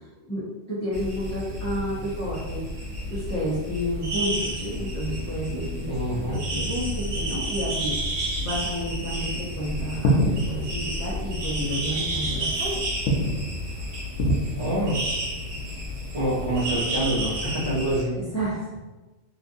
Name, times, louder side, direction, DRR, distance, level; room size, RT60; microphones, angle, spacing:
voice 1, 0.7-2.7 3.1-7.9 8.4-12.9 18.3-18.8, equal, 20° left, -9 dB, 0.5 m, -30 dB
sound 1, 0.9-18.0, right 1 dB, 80° right, 1.3 m, -31 dB
voice 2, 5.9-6.4 14.6-15.0 16.1-18.1, right 1 dB, 35° right, -9 dB, 0.9 m, -26 dB
sound 2, 7.7-17.0, equal, 90° left, 1.0 m, -30 dB
2.9 x 2.4 x 2.6 m, 1.2 s
omnidirectional pair, 1.3 m